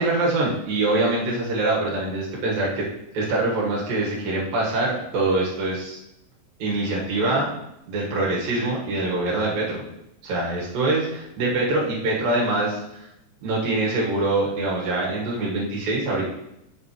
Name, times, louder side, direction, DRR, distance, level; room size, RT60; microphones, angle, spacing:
voice 1, 0.0-2.8 3.1-6.0 6.6-7.5 7.9-9.8 10.2-13.1 13.4-16.3, right 2 dB, 85° right, -4 dB, 3.3 m, -24 dB
8.6 x 7.1 x 3.1 m, 0.83 s
omnidirectional pair, 4.0 m